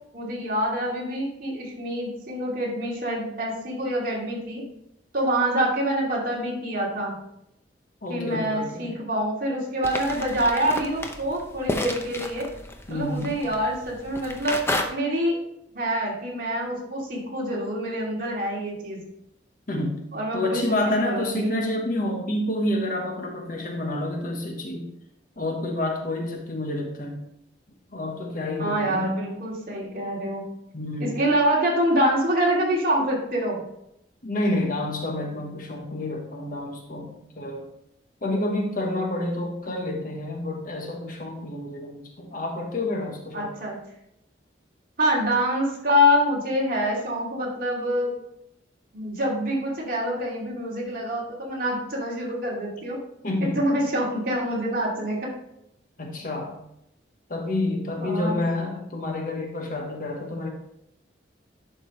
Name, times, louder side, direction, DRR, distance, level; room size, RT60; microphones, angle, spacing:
voice 1, 0.1-4.6 5.1-7.1 8.1-12.5 12.9-14.6 14.9-15.4 15.7-19.0 20.1-20.8 21.0-21.6 28.6-30.4 31.0-33.6 43.3-43.8 45.0-48.1 48.9-53.0 53.4-55.3 58.0-58.4, equal, 50° right, -4 dB, 2.7 m, -26 dB
voice 2, 8.0-8.9 12.9-13.4 19.7-20.0 20.3-24.9 25.4-27.2 27.9-29.2 30.7-31.2 34.2-37.7 38.2-43.5 53.2-53.6 56.0-56.6 57.3-60.5, left 1 dB, 50° left, 1 dB, 1.2 m, -29 dB
sound 1, 9.8-14.8, left 1 dB, 15° left, 0.7 m, -32 dB
11.0 x 5.2 x 3.2 m, 0.79 s
head